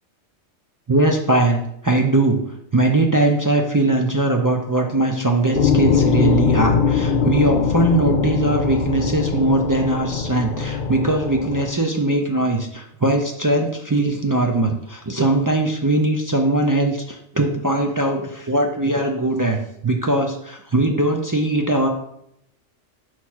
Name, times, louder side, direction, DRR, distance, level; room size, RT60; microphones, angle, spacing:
voice 1, 0.9-2.4 2.7-21.9, right 2 dB, 30° right, 1 dB, 0.3 m, -20 dB
sound 1, 5.5-11.7, left 6 dB, 60° left, 0.5 m, -21 dB
6.2 x 3.1 x 5.7 m, 0.73 s
omnidirectional pair, 1.2 m